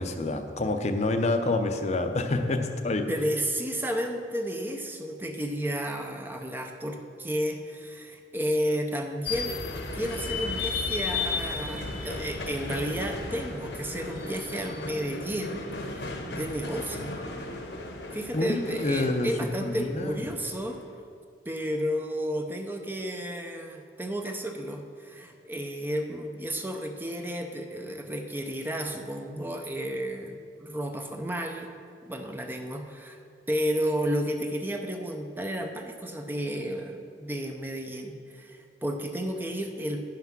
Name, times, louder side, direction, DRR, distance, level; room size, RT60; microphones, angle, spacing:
voice 1, 0.0-3.1 18.3-19.3 19.6-20.2, left 2 dB, 40° left, 6 dB, 0.6 m, -27 dB
voice 2, 3.1-9.6 9.9-17.1 18.1-20.8 21.5-31.7 32.0-33.2 33.5-40.0, equal, 10° right, 4 dB, 0.5 m, -32 dB
sound 1, 9.3-20.8, left 3 dB, 70° left, 1.1 m, -35 dB
10.5 x 5.8 x 5.9 m, 2.3 s
head